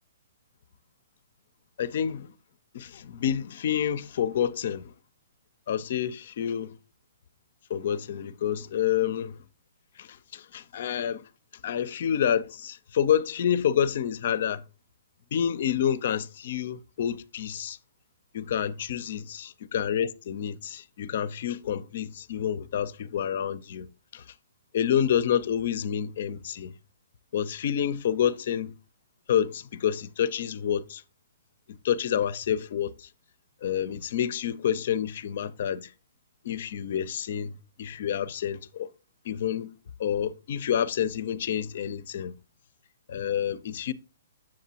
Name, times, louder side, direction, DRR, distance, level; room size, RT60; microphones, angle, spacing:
voice 1, 1.8-2.3 2.7-4.9 5.7-6.7 7.7-9.4 10.0-11.2 11.6-14.6 15.3-17.8 18.3-24.3 24.7-26.7 27.3-28.7 29.3-31.0 31.7-33.1 33.6-35.9 36.4-38.9 39.2-39.7 40.0-42.3 43.1-43.9, left 9 dB, 55° left, 0.5 m, -28 dB
7.5 x 7.3 x 2.8 m
figure-of-eight pair, 125°, 0 cm